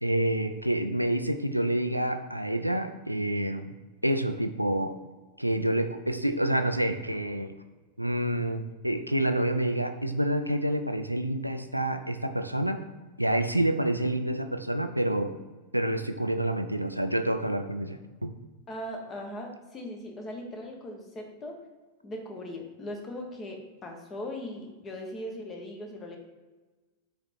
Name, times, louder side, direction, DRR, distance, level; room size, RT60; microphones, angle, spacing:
voice 1, 0.0-3.7 4.0-5.0 5.4-7.5 8.0-12.8 13.2-15.3 15.7-18.3, right 1 dB, 90° right, 8 dB, 0.4 m, -28 dB
voice 2, 18.7-21.6 22.0-26.2, left 1 dB, 25° left, 2 dB, 1.3 m, -39 dB
5.0 x 4.1 x 4.6 m, 1.3 s
figure-of-eight pair, 90°, 0 cm